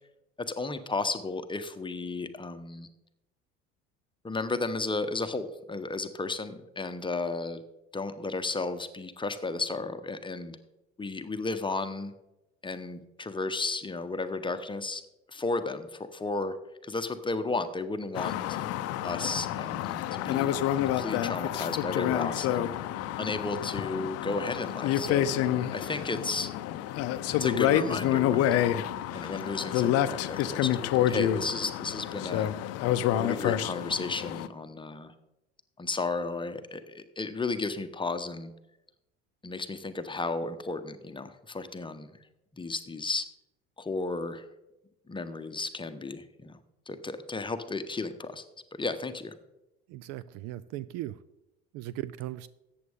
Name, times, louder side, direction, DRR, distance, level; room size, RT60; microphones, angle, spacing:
voice 1, 0.4-2.9 4.2-7.6 7.9-10.6 11.0-12.1 12.6-15.0 15.3-16.5 16.8-18.6 19.0-20.6 21.0-22.8 23.2-25.3 25.7-26.5 27.3-28.6 29.1-32.5 33.2-35.1 35.8-38.5 39.4-42.1 42.5-43.3 43.8-44.5 45.1-46.6 46.9-48.4 48.7-49.3, left 3 dB, 15° left, 9 dB, 1.0 m, -33 dB
sound 1, 18.1-34.5, left 11 dB, 50° left, 0.6 m, -28 dB
voice 2, 49.9-51.2 51.7-52.5, right 14 dB, 55° right, 18 dB, 0.5 m, -38 dB
14.0 x 8.7 x 3.6 m, 0.93 s
hypercardioid pair, 65°, 33 cm